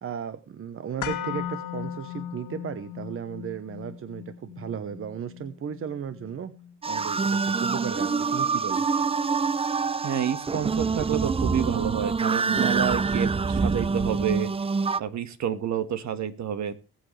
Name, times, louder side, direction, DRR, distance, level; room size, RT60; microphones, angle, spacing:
voice 1, 0.0-6.5 6.9-8.8, right 8 dB, 45° right, 12 dB, 1.0 m, -35 dB
sound 1, 1.0-9.1 9.4-9.5, left 10 dB, 90° left, 2.0 m, -38 dB
sound 2, 6.8-15.0, right 4 dB, 20° right, 0.5 m, -26 dB
voice 2, 10.0-14.5 15.0-16.8, right 9 dB, 65° right, 10 dB, 1.6 m, -29 dB
20.5 x 7.9 x 3.3 m, 0.32 s
cardioid pair, 90°, 30 cm